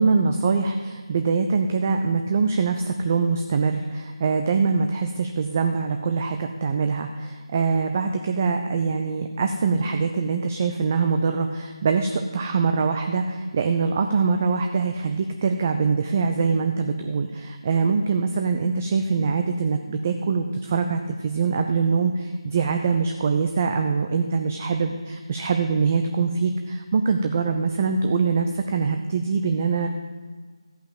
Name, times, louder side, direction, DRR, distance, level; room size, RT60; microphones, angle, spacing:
voice 1, 0.0-29.9, right 5 dB, 25° right, 6 dB, 0.5 m, -23 dB
14.5 x 5.6 x 7.5 m, 1.5 s
figure-of-eight pair, 160°, 3 cm